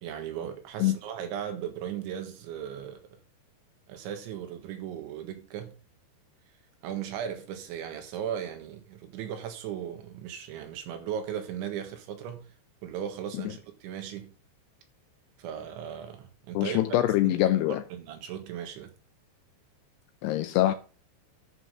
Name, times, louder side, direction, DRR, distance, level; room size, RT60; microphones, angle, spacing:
voice 1, 0.0-3.1 3.9-5.8 6.8-12.5 12.8-14.3 15.4-16.8 17.2-17.4 17.9-18.9, right 9 dB, 85° right, 3.9 m, -37 dB
voice 2, 16.6-17.8 20.2-20.7, left 14 dB, 85° left, 2.4 m, -24 dB
11.0 x 5.5 x 5.6 m
omnidirectional pair, 5.2 m